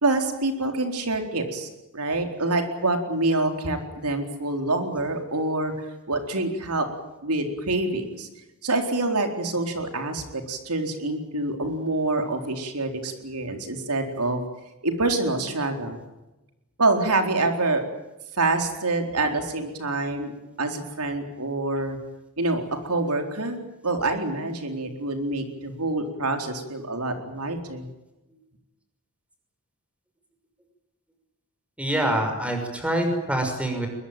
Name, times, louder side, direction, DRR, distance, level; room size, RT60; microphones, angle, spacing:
voice 1, 0.0-3.8 4.0-5.7 6.1-6.9 7.2-8.3 8.6-14.4 14.8-16.0 16.8-17.9 18.4-20.3 20.6-22.0 22.4-27.9, right 2 dB, 85° right, 5 dB, 4.2 m, -26 dB
voice 2, 31.8-33.9, right 1 dB, 5° right, 4 dB, 6.1 m, -25 dB
22.5 x 21.5 x 9.2 m, 1.0 s
head